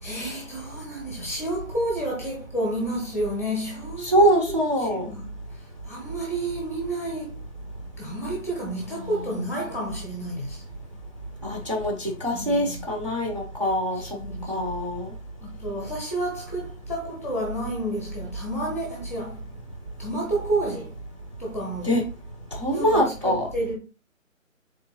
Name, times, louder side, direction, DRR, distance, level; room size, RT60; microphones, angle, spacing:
voice 1, 0.0-4.1 4.5-7.4 8.0-10.6 12.3-12.8 13.9-14.7 15.4-19.4 20.0-20.9 21.4-21.9 22.7-23.7, right 1 dB, 10° left, 0.7 m, -30 dB
voice 2, 4.0-5.1 9.0-9.1 11.4-14.0 14.5-15.1 21.8-22.0 22.5-23.4, equal, 25° right, 0.5 m, -23 dB
3.9 x 3.0 x 3.8 m
figure-of-eight pair, 145°, 40 cm